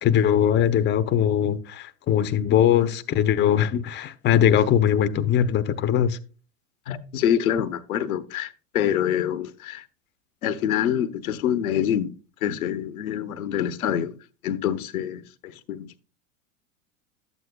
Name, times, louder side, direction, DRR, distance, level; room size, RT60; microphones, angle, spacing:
voice 1, 0.0-6.2, left 9 dB, 25° left, 0.6 m, -21 dB
voice 2, 6.9-9.9 10.4-12.1 12.4-14.1 14.4-16.0, left 10 dB, 80° left, 0.8 m, -26 dB
12.0 x 8.1 x 2.2 m
hypercardioid pair, 90°, 42 cm